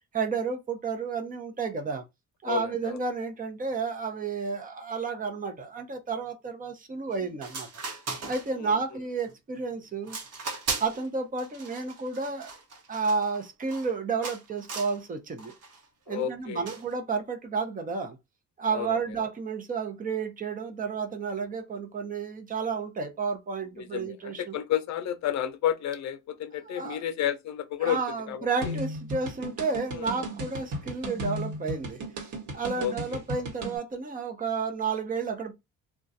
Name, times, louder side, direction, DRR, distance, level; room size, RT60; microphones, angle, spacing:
voice 1, 0.1-2.0 2.4-7.7 8.3-10.2 10.8-12.5 12.9-15.5 16.1-18.2 18.6-24.5 26.7-27.0 27.8-35.5, right 4 dB, 30° right, 0.7 m, -31 dB
voice 2, 2.4-3.0 8.6-8.7 16.1-16.7 18.7-19.0 23.8-28.0 28.3-28.8 29.9-30.2 32.8-33.2, left 10 dB, 65° left, 0.6 m, -31 dB
sound 1, 7.1-7.2 7.4-8.8 9.2-9.6 10.0-11.1 11.4-13.9 14.2-15.0 15.4-15.8 16.7-16.9, right 4 dB, 55° right, 1.0 m, -37 dB
sound 2, 28.6-33.8, right 1 dB, 75° right, 1.3 m, -35 dB
2.4 x 2.3 x 4.0 m
cardioid pair, 135°, 30 cm